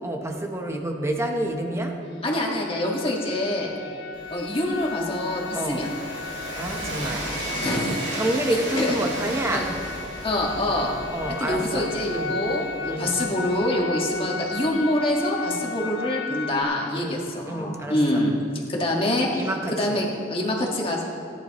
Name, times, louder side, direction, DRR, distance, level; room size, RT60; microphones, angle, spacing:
voice 1, 0.0-2.0 4.1-4.2 5.5-5.8 6.6-7.3 8.1-9.7 11.1-12.4 12.9-13.1 16.9-18.2 19.3-20.0, right 1 dB, 15° right, 3 dB, 1.0 m, -29 dB
sound 1, 2.0-16.6, left 3 dB, 65° left, 0.9 m, -35 dB
voice 2, 2.2-3.7 4.3-5.9 7.6-8.2 8.8-8.9 9.5-9.7 10.2-10.9 11.4-18.3 18.7-21.0, left 1 dB, 30° left, -2 dB, 1.8 m, -25 dB
Train, 4.1-14.0, right 1 dB, 90° right, 3.0 m, -35 dB
17.5 x 10.5 x 3.1 m, 2.5 s
head